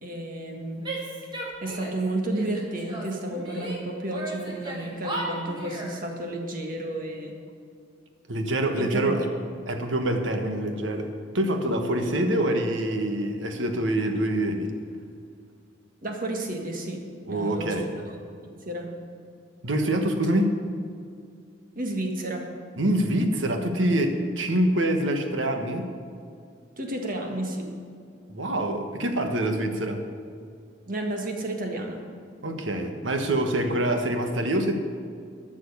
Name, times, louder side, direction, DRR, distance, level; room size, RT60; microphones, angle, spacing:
voice 1, 0.0-0.8 1.6-7.4 8.8-9.2 16.0-17.0 17.3-17.8 18.1-18.2 18.4-18.9 21.7-22.5 26.8-27.7 30.9-32.0, right 1 dB, 50° right, 2 dB, 1.7 m, -31 dB
Female speech woman speaking / Yell, 0.8-2.0 2.3-3.8 4.1-6.0, right 1 dB, 25° right, 2.3 m, -36 dB
voice 2, 8.3-9.3 9.7-11.1 11.3-14.7 17.3-17.9 19.6-20.6 22.8-25.9 28.3-30.0 32.4-34.7, right 1 dB, 90° right, 5 dB, 1.3 m, -25 dB
13.0 x 6.4 x 8.2 m, 2.3 s
head